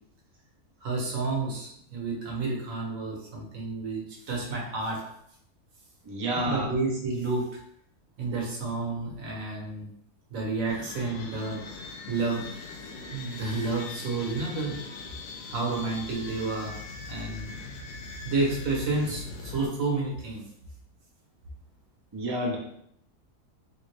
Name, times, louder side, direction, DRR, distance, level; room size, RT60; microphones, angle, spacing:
voice 1, 0.8-5.0 6.3-7.4 8.2-9.9 10.3-11.6 12.1-12.6 13.1-14.8 15.5-16.7 17.0-17.5 18.2-20.4, right 3 dB, 60° right, -2 dB, 1.3 m, -30 dB
voice 2, 6.0-6.7 22.1-22.6, right 1 dB, 30° right, -3 dB, 0.4 m, -29 dB
sound 1, 10.7-19.7, left 4 dB, 85° left, 1.2 m, -41 dB
3.5 x 2.8 x 3.2 m, 0.71 s
omnidirectional pair, 1.7 m